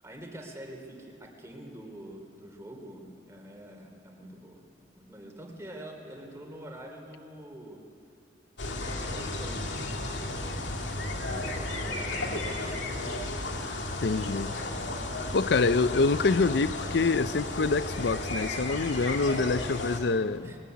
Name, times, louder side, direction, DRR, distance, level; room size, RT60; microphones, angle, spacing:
voice 1, 0.0-4.6 4.9-7.8 8.7-9.9 10.7-13.3 19.2-19.5 19.8-19.9 20.4-20.6, right 1 dB, 15° right, 3.5 m, -46 dB
sound 1, 8.6-20.0, left 2 dB, 85° left, 2.2 m, -34 dB
voice 2, 14.0-14.5 15.3-20.5, left 3 dB, 65° left, 0.6 m, -26 dB
21.5 x 17.5 x 9.4 m
head